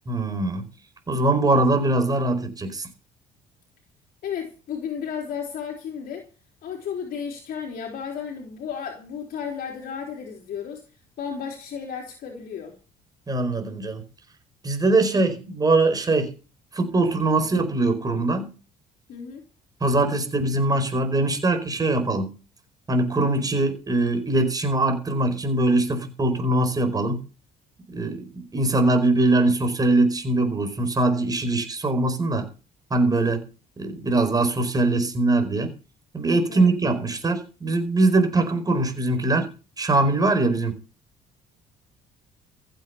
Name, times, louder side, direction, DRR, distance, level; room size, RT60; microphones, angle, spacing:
voice 1, 0.1-0.7 1.1-2.9 13.3-14.0 14.6-16.3 16.7-18.5 19.8-22.4 22.9-27.2 27.9-32.5 32.9-33.4 33.8-35.7 36.1-39.5 39.8-40.8, right 2 dB, 20° right, 4.8 m, -22 dB
voice 2, 4.2-6.3 6.6-10.8 11.2-12.8 19.1-19.4 36.5-36.7, left 7 dB, 60° left, 3.8 m, -33 dB
15.0 x 8.7 x 7.1 m
cardioid pair, 110°, 17 cm